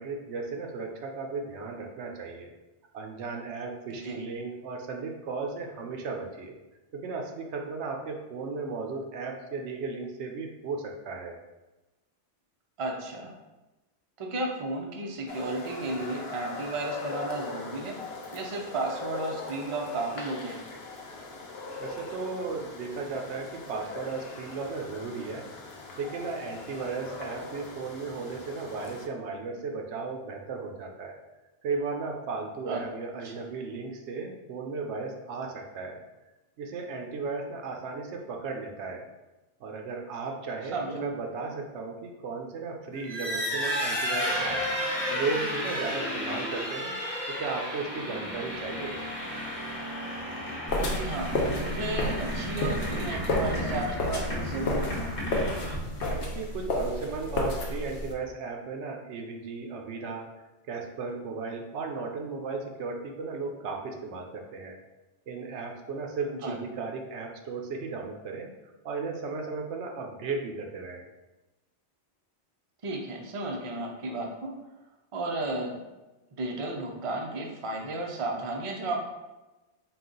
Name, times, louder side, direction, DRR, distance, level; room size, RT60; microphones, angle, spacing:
voice 1, 0.0-2.5 2.9-6.5 6.9-11.4 21.8-25.5 26.0-31.2 31.6-36.0 36.6-39.1 39.6-44.6 45.1-47.0 47.3-49.0 56.2-60.3 60.7-64.8 65.3-68.5 68.8-71.1, right 4 dB, 75° right, 2 dB, 0.9 m, -35 dB
voice 2, 12.8-13.3 14.2-18.0 18.3-20.6 32.7-32.8 33.2-33.4 40.7-41.0 50.7-55.1 66.4-66.6 72.8-74.5 75.1-75.8 76.3-79.0, right 2 dB, 40° right, 0 dB, 0.5 m, -33 dB
sound 1, 15.3-29.1, left 3 dB, 65° left, 0.8 m, -41 dB
sound 2, 42.9-56.4, equal, 35° left, 0.8 m, -33 dB
sound 3, 50.7-58.1, left 1 dB, 90° left, 1.0 m, -31 dB
3.9 x 2.4 x 3.8 m, 1.1 s
omnidirectional pair, 1.2 m